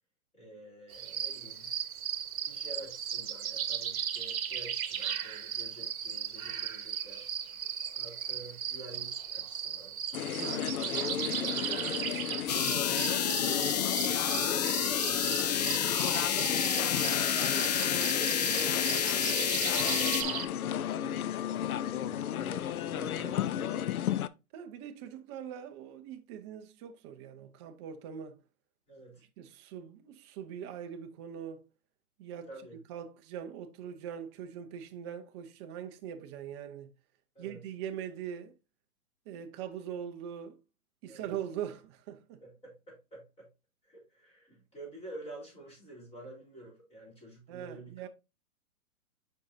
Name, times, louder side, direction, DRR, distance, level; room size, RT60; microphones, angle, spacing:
voice 1, 0.3-1.7 2.5-7.3 7.9-10.0 10.5-10.8 11.2-13.5 14.0-15.9 16.3-20.0 20.7-23.9 28.9-29.2 32.5-32.8 37.4-37.6 41.1-41.3 42.4-43.5 43.8-47.9, right 1 dB, 15° left, 3.7 m, -49 dB
sound 1, 0.9-20.5, right 9 dB, 70° right, 1.0 m, -37 dB
sound 2, 10.1-24.3, left 10 dB, 80° left, 0.6 m, -34 dB
voice 2, 10.4-10.7 11.0-11.4 24.5-28.4 29.4-31.7 32.2-32.5 32.9-36.9 37.4-38.5 39.3-40.6 41.0-42.4 47.5-48.1, right 9 dB, 20° right, 0.5 m, -42 dB
sound 3, 12.5-20.2, left 9 dB, 30° left, 0.4 m, -30 dB
7.3 x 5.5 x 2.6 m
hypercardioid pair, 135°, 43 cm